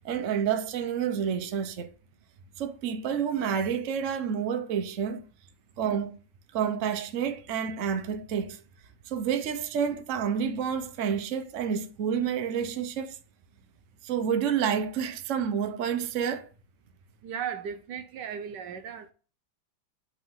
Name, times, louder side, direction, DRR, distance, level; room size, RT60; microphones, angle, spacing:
voice 1, 0.0-1.9 2.6-5.2 5.8-6.2 6.5-8.6 9.1-13.2 14.0-16.5, right 7 dB, 55° right, 0.9 m, -29 dB
voice 2, 17.2-19.1, right 8 dB, 70° right, 1.2 m, -36 dB
8.5 x 3.6 x 3.7 m
omnidirectional pair, 2.1 m